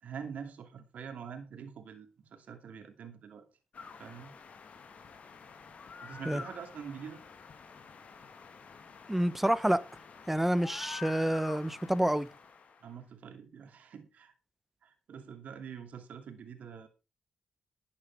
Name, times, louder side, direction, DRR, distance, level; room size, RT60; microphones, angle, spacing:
voice 1, 0.0-3.5 4.0-4.3 6.0-7.2 12.8-14.3 14.8-16.9, right 7 dB, 75° right, 2.6 m, -45 dB
sound 1, 3.7-12.9, left 5 dB, 65° left, 2.4 m, -48 dB
voice 2, 9.1-9.8 10.3-12.3, right 1 dB, 10° right, 1.2 m, -28 dB
12.5 x 8.7 x 4.7 m
supercardioid pair, 50°, 3 cm